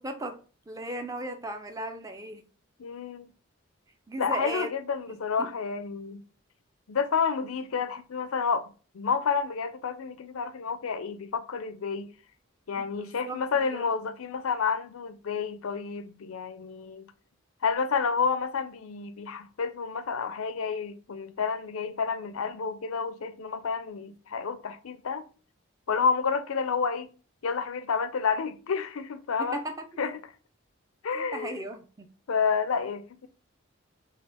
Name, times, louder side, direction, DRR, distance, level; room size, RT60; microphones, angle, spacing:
voice 1, 0.0-2.4 4.1-4.7 5.1-5.6 12.7-13.4 13.7-13.9 29.4-29.9 31.1-32.1, right 1 dB, 15° right, 0.5 m, -37 dB
voice 2, 2.8-3.3 4.2-6.2 6.9-12.1 12.7-17.1 17.6-25.2 25.9-27.1 27.4-29.6 30.0-30.1 31.0-31.6 32.3-33.3, left 5 dB, 90° left, 0.5 m, -30 dB
6.2 x 2.4 x 3.4 m
head